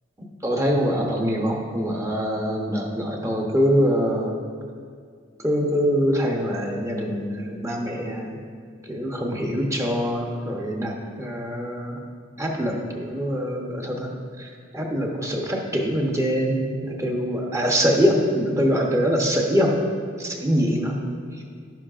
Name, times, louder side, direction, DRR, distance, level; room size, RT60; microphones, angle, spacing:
voice 1, 0.4-4.3 5.4-8.4 8.9-12.0 12.4-14.1 14.4-14.5 14.7-19.8 20.2-21.0, equal, 15° right, 0 dB, 0.9 m, -24 dB
12.0 x 10.5 x 2.5 m, 2.1 s
head